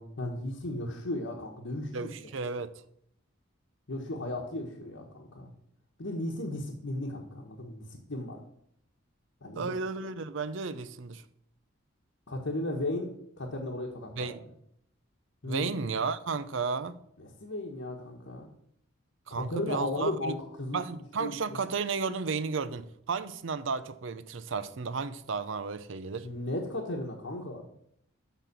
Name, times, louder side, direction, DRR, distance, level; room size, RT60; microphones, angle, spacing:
voice 1, 0.0-2.1 3.9-5.5 6.0-8.4 9.4-9.7 12.3-14.3 15.4-15.7 17.2-18.5 19.3-20.8 21.2-21.6 26.2-27.6, left 1 dB, 70° left, 1.2 m, -35 dB
voice 2, 1.9-2.7 9.5-11.2 14.2-14.4 15.4-17.0 19.3-20.4 20.7-26.3, right 4 dB, 65° right, 0.6 m, -33 dB
7.1 x 5.8 x 6.7 m
head